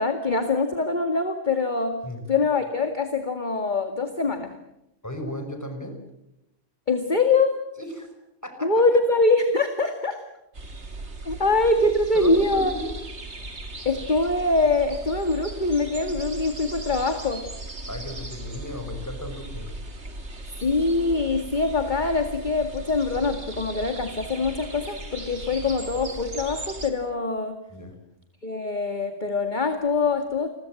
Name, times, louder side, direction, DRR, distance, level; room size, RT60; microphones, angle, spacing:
voice 1, 0.0-2.0 2.3-4.5 6.9-7.6 8.6-10.2 11.3-12.7 13.9-17.4 20.6-27.6 28.4-30.5, left 3 dB, 40° left, 6 dB, 2.2 m, -23 dB
voice 2, 5.0-6.0 7.8-8.1 8.4-8.8 12.1-12.9 17.9-19.8 27.7-27.9, left 1 dB, 15° left, 5 dB, 5.6 m, -35 dB
sound 1, 10.5-26.9, right 2 dB, 65° right, 3.2 m, -38 dB
30.0 x 22.0 x 7.7 m, 0.87 s
omnidirectional pair, 1.3 m